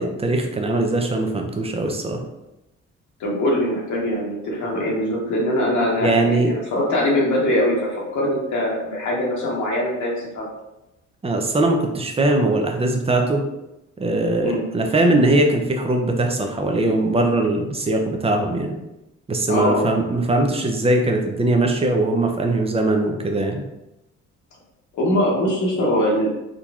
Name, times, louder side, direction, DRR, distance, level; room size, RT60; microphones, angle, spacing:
voice 1, 0.0-2.2 6.0-6.5 11.2-13.4 14.0-18.7 19.3-23.6, right 2 dB, 20° right, 3 dB, 0.6 m, -20 dB
voice 2, 3.2-10.5 14.4-14.6 19.5-19.9 24.9-26.4, left 1 dB, 70° left, -3 dB, 1.1 m, -22 dB
3.8 x 2.9 x 2.3 m, 0.93 s
cardioid pair, 90°, 30 cm